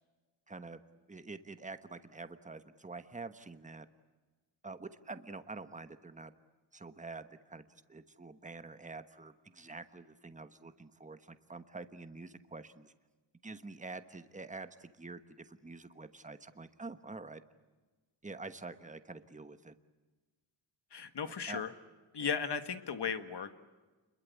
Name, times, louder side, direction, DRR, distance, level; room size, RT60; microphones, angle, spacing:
voice 1, 0.5-0.8 1.1-3.8 4.6-6.3 6.7-7.6 7.9-12.9 13.4-17.4 18.2-19.7 21.2-21.6 22.2-22.3, right 3 dB, 15° right, 10 dB, 1.2 m, -47 dB
voice 2, 20.9-21.7 22.1-23.5, left 6 dB, 60° left, 9 dB, 1.7 m, -36 dB
30.0 x 22.0 x 8.3 m, 1.3 s
wide cardioid pair, 165°, 46 cm